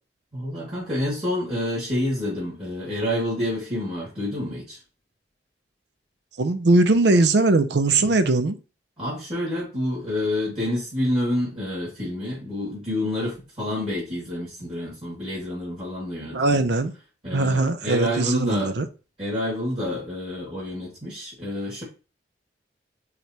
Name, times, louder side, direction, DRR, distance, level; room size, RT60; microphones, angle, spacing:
voice 1, 0.3-4.8 9.0-16.7 17.2-18.7 19.2-21.8, left 1 dB, 30° right, 2.3 m, -28 dB
voice 2, 6.4-8.6 16.3-16.9 17.3-18.9, right 2 dB, 65° right, 0.5 m, -20 dB
4.6 x 3.4 x 2.9 m
head